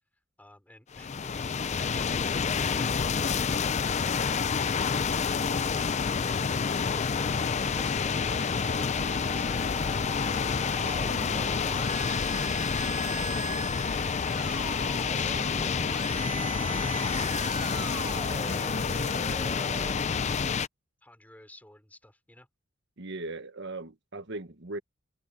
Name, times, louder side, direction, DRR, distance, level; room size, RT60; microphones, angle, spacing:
voice 1, 0.4-4.7 21.0-22.5, left 1 dB, 10° left, 4.9 m, -53 dB
sound 1, 0.9-20.7, left 5 dB, 35° left, 0.5 m, -28 dB
Musical instrument, 7.0-20.0, right 4 dB, 25° right, 1.0 m, -41 dB
voice 2, 23.0-24.8, right 2 dB, 60° right, 1.4 m, -38 dB
head